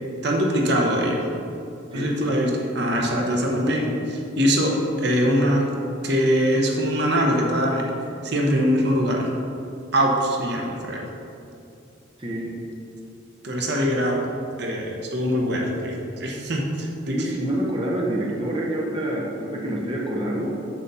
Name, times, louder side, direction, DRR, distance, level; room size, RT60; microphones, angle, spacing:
voice 1, 0.2-1.3 1.9-5.7 6.0-7.9 8.2-9.3 9.9-11.1 13.4-14.2 14.6-17.3, equal, 60° right, -1 dB, 1.1 m, -22 dB
voice 2, 12.2-12.5 17.1-20.7, right 1 dB, 25° right, -3 dB, 1.0 m, -27 dB
8.3 x 4.1 x 6.9 m, 2.6 s
head